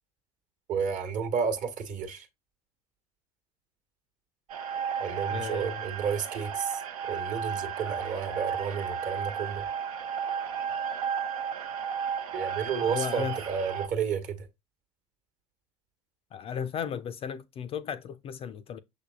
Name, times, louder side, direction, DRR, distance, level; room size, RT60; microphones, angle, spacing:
voice 1, 0.7-2.3 5.0-6.8 7.1-9.6 12.3-14.5, right 6 dB, 45° right, 1.2 m, -31 dB
sound 1, 4.5-13.9, right 7 dB, 75° right, 0.7 m, -33 dB
voice 2, 5.3-5.8 12.7-13.4 16.3-18.8, left 7 dB, 30° left, 0.4 m, -35 dB
6.4 x 3.3 x 2.4 m
figure-of-eight pair, 75°, 19 cm